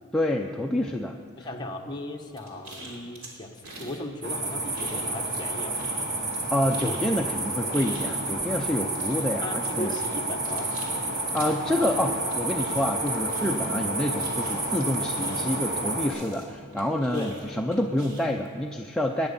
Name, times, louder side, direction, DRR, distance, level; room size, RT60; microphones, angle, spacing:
voice 1, 0.1-1.5 6.5-9.9 11.3-19.3, left 1 dB, 5° left, 0 dB, 0.5 m, -28 dB
voice 2, 1.4-5.8 9.4-10.7 17.1-17.4, left 1 dB, 20° left, 1 dB, 1.2 m, -36 dB
sound 1, 2.4-4.0 4.3-5.5 5.7-15.7 16.1-18.5, right 1 dB, 90° right, 3.2 m, -45 dB
sound 2, 4.2-16.1, right 2 dB, 55° right, 2.3 m, -30 dB
18.5 x 10.5 x 5.5 m, 2.2 s
head